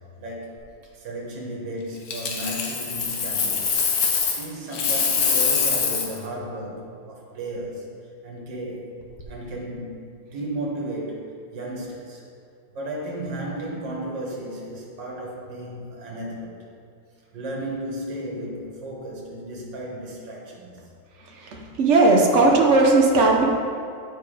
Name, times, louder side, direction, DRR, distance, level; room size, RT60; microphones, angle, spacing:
voice 1, 0.2-0.7 0.9-3.8 4.3-8.9 9.3-12.2 12.7-16.7 17.3-20.9, right 1 dB, 70° right, -3 dB, 2.0 m, -34 dB
Coin (dropping), 2.1-4.5 4.7-6.2 9.0-9.2, left 5 dB, 60° left, 1.3 m, -24 dB
voice 2, 21.4-23.4, right 3 dB, 55° right, 0 dB, 0.8 m, -17 dB
8.8 x 4.5 x 4.8 m, 2.3 s
omnidirectional pair, 2.0 m